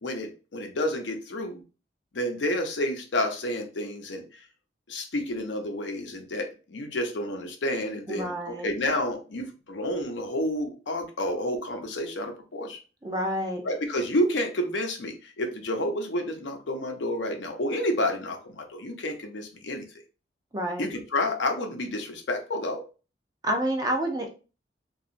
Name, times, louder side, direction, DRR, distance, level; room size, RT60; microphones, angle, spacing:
voice 1, 0.0-1.6 2.1-4.5 4.9-12.8 13.6-19.9 20.8-22.8, left 1 dB, 90° left, 4 dB, 0.6 m, -30 dB
voice 2, 8.1-8.7 13.0-13.6 20.5-20.9 23.4-24.3, right 1 dB, 20° right, 3 dB, 0.4 m, -28 dB
2.8 x 2.3 x 2.5 m, 0.34 s
head